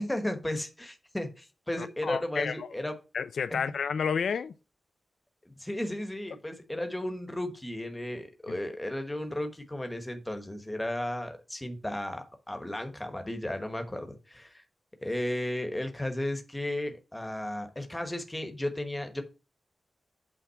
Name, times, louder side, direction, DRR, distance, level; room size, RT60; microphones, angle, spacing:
voice 1, 0.0-2.9 3.5-3.6 5.4-14.5 15.0-19.2, left 1 dB, 10° left, 1.2 m, -34 dB
voice 2, 1.8-2.7 3.1-4.5, left 6 dB, 80° left, 0.4 m, -31 dB
8.4 x 3.6 x 5.7 m
wide cardioid pair, 160°, 0 cm